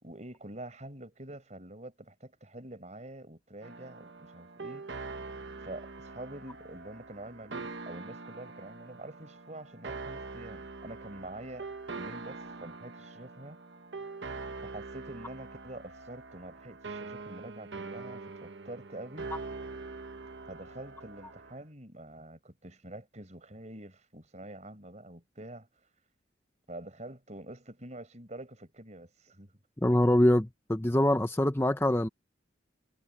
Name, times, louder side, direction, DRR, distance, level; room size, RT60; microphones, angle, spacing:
voice 1, 0.0-4.9 5.6-11.7 11.9-13.6 14.6-19.3 20.5-25.7 26.7-29.5, right 1 dB, 40° right, 5.0 m, -46 dB
sound 1, 3.6-21.6, right 3 dB, 70° right, 1.3 m, -43 dB
voice 2, 29.8-32.1, left 1 dB, 15° left, 0.8 m, -24 dB
head